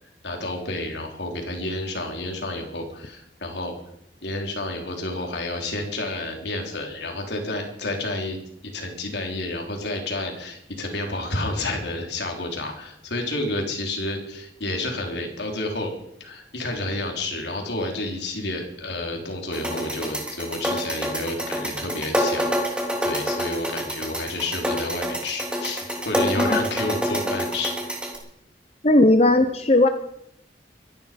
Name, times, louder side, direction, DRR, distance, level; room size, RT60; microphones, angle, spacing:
voice 1, 0.2-3.7 4.2-8.4 8.6-15.9 16.2-27.7, left 2 dB, 80° left, 2 dB, 3.7 m, -30 dB
sound 1, 19.5-28.2, equal, 5° right, 2.8 m, -27 dB
voice 2, 28.8-29.9, left 2 dB, 35° left, 8 dB, 0.8 m, -17 dB
24.5 x 11.0 x 5.2 m, 0.77 s
head